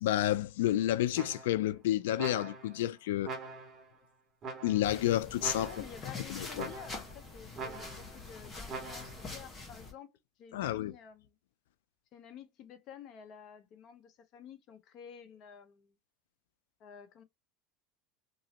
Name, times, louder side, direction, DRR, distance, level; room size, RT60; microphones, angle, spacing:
voice 1, 0.0-3.3 4.6-5.7 6.3-6.7 10.5-10.9, left 13 dB, 85° left, 0.3 m, -30 dB
sound 1, 1.1-1.7 2.2-2.8 3.2-3.9 4.4-5.0 5.4-6.0 6.6-7.2 7.6-8.2 8.7-9.3, right 4 dB, 35° right, 1.7 m, -43 dB
sound 2, 4.8-9.9, left 3 dB, 20° left, 1.2 m, -45 dB
voice 2, 5.7-10.1 10.4-11.4 12.1-16.0 16.8-17.2, left 8 dB, 50° left, 0.8 m, -51 dB
3.0 x 2.6 x 2.8 m
supercardioid pair, 115°, 0 cm